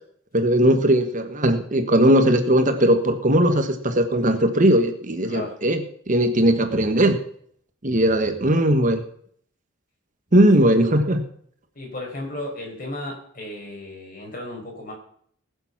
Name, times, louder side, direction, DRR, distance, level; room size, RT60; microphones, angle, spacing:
voice 1, 0.3-5.8 6.1-7.2 7.8-9.0 10.3-11.2, right 1 dB, 40° right, 7 dB, 1.2 m, -18 dB
voice 2, 11.7-14.9, left 1 dB, 45° left, 0 dB, 4.7 m, -34 dB
19.5 x 7.0 x 5.9 m, 0.63 s
head